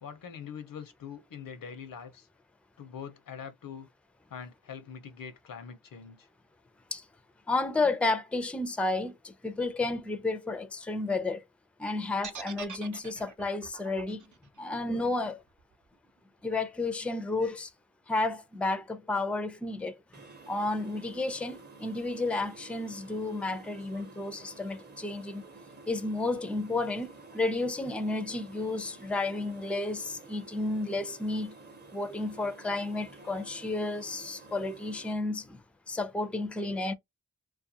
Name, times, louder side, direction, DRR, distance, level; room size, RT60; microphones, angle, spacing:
voice 1, 0.0-2.3 2.8-3.9 4.3-6.3, left 7 dB, 85° left, 0.7 m, -43 dB
voice 2, 7.5-11.4 11.8-14.2 14.6-15.4 16.4-17.7 18.1-20.0 20.5-25.4 25.9-31.5 31.9-35.6 35.9-36.9, left 2 dB, 5° left, 0.4 m, -32 dB
sound 1, 12.2-16.3, right 6 dB, 65° right, 0.6 m, -45 dB
sound 2, 20.1-35.1, right 3 dB, 30° right, 0.8 m, -51 dB
2.4 x 2.3 x 2.7 m
cardioid pair, 55°, 33 cm